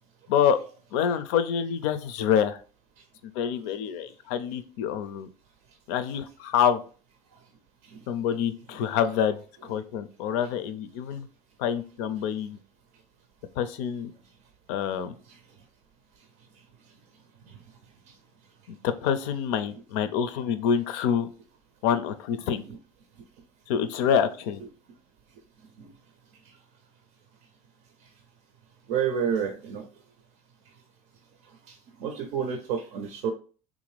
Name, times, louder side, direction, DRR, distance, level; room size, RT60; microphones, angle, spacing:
voice 1, 0.9-2.6 3.2-5.3 5.9-6.8 8.1-11.3 11.6-12.6 13.6-14.1 14.7-15.1 18.7-21.3 21.8-22.6 23.7-24.6, left 8 dB, 80° left, 11 dB, 0.4 m, -26 dB
voice 2, 28.9-29.8 32.0-33.3, right 7 dB, 75° right, 6 dB, 0.6 m, -29 dB
3.6 x 2.6 x 3.1 m, 0.38 s
supercardioid pair, 90°, 15 cm